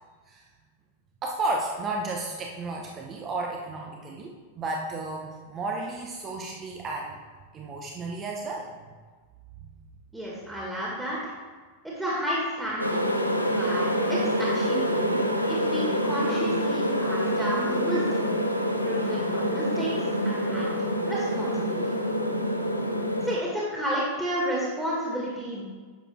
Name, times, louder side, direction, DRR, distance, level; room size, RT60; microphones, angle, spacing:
voice 1, 1.2-7.2 7.5-8.8 9.6-9.7, right 2 dB, 30° right, 0 dB, 1.0 m, -33 dB
voice 2, 10.1-11.3 11.8-13.0 13.5-15.2 15.5-20.7 21.0-22.0 23.2-25.7, equal, 5° right, -6 dB, 2.1 m, -31 dB
sound 1, 12.8-23.4, equal, 85° left, 0.8 m, -26 dB
10.5 x 7.0 x 3.7 m, 1.5 s
figure-of-eight pair, 90°, 0 cm